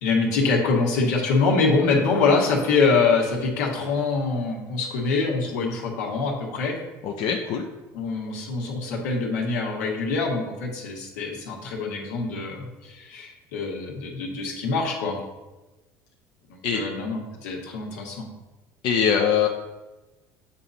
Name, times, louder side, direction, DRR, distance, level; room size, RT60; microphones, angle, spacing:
voice 1, 0.0-6.8 7.9-15.2 16.5-18.3, left 4 dB, 85° left, -1 dB, 1.4 m, -24 dB
voice 2, 7.0-7.7 16.6-16.8 18.8-19.5, left 7 dB, 65° left, 1 dB, 0.7 m, -22 dB
7.5 x 2.8 x 5.1 m, 1.1 s
supercardioid pair, 85°, 9 cm